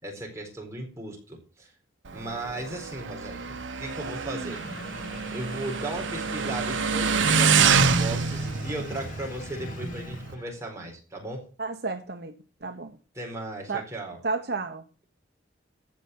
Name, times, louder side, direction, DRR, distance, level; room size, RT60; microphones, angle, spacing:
voice 1, 0.0-1.7 2.1-4.6 5.3-11.5 13.1-14.2, right 1 dB, 15° right, 4.2 m, -37 dB
Motorcycle, 2.1-10.3, right 5 dB, 80° right, 0.9 m, -26 dB
sound 1, 4.4-10.7, left 2 dB, 45° left, 2.1 m, -43 dB
voice 2, 11.6-13.0 13.7-13.8 14.2-14.8, right 4 dB, 55° right, 1.0 m, -32 dB
15.0 x 5.7 x 7.9 m
head